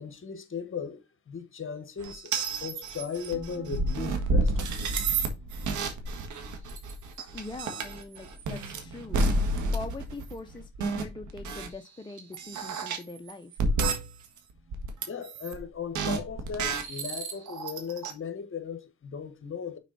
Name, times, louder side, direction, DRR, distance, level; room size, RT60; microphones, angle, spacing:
voice 1, 0.0-5.0 15.1-19.8, left 6 dB, 45° left, 1.5 m, -37 dB
sound 1, 2.0-11.7 12.2-14.4 14.7-15.6 15.9-18.1, right 2 dB, 75° right, 1.7 m, -30 dB
voice 2, 7.3-9.2 9.7-13.6, left 2 dB, 15° left, 0.7 m, -42 dB
6.1 x 4.4 x 4.0 m
cardioid pair, 90°, 30 cm